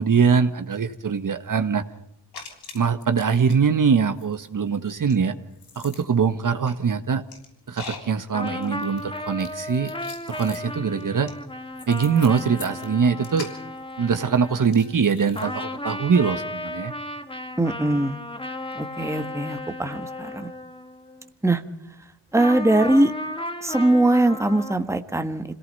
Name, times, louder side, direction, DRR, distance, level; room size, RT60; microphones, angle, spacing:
voice 1, 0.0-1.8 2.7-5.4 5.7-7.2 7.7-9.9 10.3-11.3 11.9-13.5 14.0-16.9, right 6 dB, 50° right, 9 dB, 1.5 m, -22 dB
sound 1, 2.3-3.6 3.8-15.4, left 4 dB, 70° left, 6.6 m, -43 dB
sound 2, 8.3-15.1 15.3-21.3 22.3-24.8, left 1 dB, 15° left, 1.7 m, -34 dB
voice 2, 17.6-18.2 18.7-20.5 21.4-21.6 22.3-23.1 23.6-25.4, right 1 dB, 5° right, 7 dB, 1.5 m, -21 dB
26.5 x 18.0 x 5.6 m, 0.78 s
cardioid pair, 85°, 41 cm